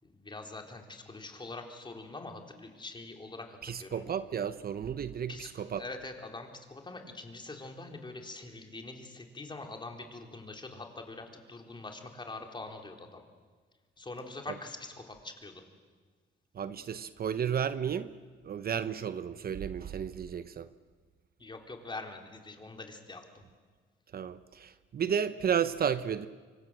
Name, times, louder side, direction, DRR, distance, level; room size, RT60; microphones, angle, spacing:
voice 1, 0.0-4.1 5.3-5.5 5.8-13.2 14.0-15.6 21.4-23.4, left 2 dB, 25° left, 3.9 m, -44 dB
voice 2, 3.6-5.8 16.5-18.1 18.4-20.7 24.1-26.3, right 8 dB, 50° right, 0.9 m, -33 dB
25.0 x 25.0 x 7.6 m
cardioid pair, 90°, 20 cm